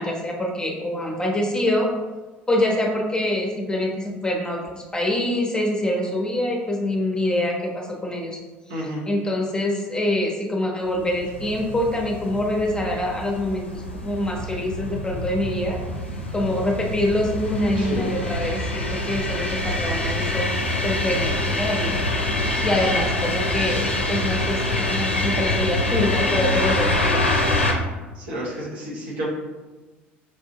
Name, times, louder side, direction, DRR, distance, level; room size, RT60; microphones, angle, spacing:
voice 1, 0.0-1.9 2.5-8.4 9.1-13.7 14.0-15.8 16.3-20.5 20.8-27.5, left 1 dB, 15° left, -1 dB, 0.8 m, -25 dB
voice 2, 8.7-9.0 17.8-18.1 28.1-29.3, equal, 65° right, -5 dB, 1.1 m, -30 dB
sound 1, 11.0-27.7, left 2 dB, 85° left, 0.4 m, -25 dB
4.9 x 2.6 x 2.8 m, 1.2 s
figure-of-eight pair, 60°, 6 cm